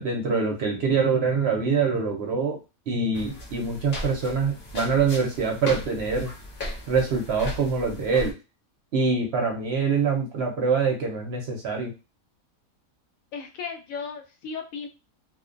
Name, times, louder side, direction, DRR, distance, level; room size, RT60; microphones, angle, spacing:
voice 1, 0.0-2.6 2.9-6.3 6.9-8.3 8.9-11.9, right 5 dB, 60° right, 1 dB, 0.7 m, -24 dB
sound 1, 3.1-8.3, left 1 dB, 50° left, 0.8 m, -37 dB
voice 2, 13.3-14.9, left 5 dB, 75° left, 5 dB, 1.0 m, -35 dB
2.5 x 2.1 x 2.4 m, 0.28 s
omnidirectional pair, 1.4 m